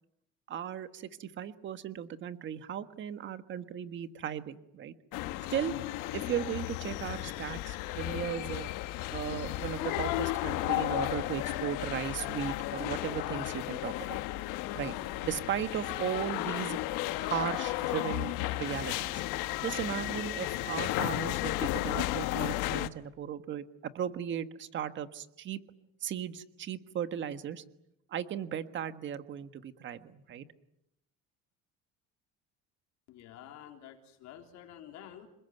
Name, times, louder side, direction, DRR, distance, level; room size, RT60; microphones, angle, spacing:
voice 1, 0.5-4.9 5.5-5.7 6.1-8.7 9.1-14.2 14.7-14.9 15.2-16.8 17.2-19.2 19.6-23.6 23.9-25.6 26.0-27.6 28.1-30.4, right 9 dB, 35° right, 10 dB, 1.5 m, -36 dB
sound 1, 5.1-22.9, left 17 dB, 75° left, 1.3 m, -34 dB
voice 2, 33.1-35.3, left 10 dB, 60° left, 4 dB, 3.6 m, -49 dB
27.5 x 21.0 x 9.4 m, 0.82 s
cardioid pair, 165°, 31 cm